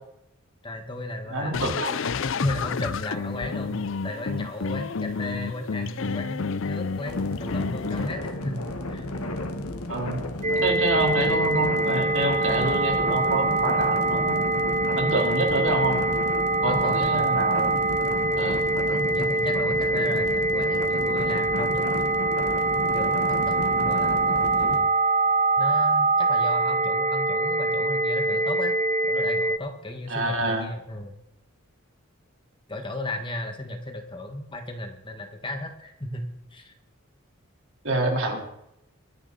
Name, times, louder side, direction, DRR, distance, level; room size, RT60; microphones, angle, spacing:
voice 1, 0.6-1.8 2.4-9.1 15.2-15.4 16.7-17.3 18.9-21.8 22.9-24.9 25.6-28.8 29.0-31.1 32.7-36.2 36.5-36.7, left 1 dB, 20° left, 4 dB, 1.6 m, -35 dB
voice 2, 1.3-2.0 9.9-10.2 10.6-14.4 14.9-16.0 16.6-17.8 18.4-18.6 30.1-30.7 37.8-38.4, right 2 dB, 60° right, 0 dB, 4.0 m, -26 dB
sound 1, 1.5-8.1, left 5 dB, 60° left, 0.5 m, -30 dB
sound 2, 7.0-24.8, left 1 dB, 85° left, 1.7 m, -33 dB
sound 3, 10.4-29.6, right 3 dB, 30° right, 0.6 m, -24 dB
24.0 x 10.0 x 4.2 m, 0.80 s
head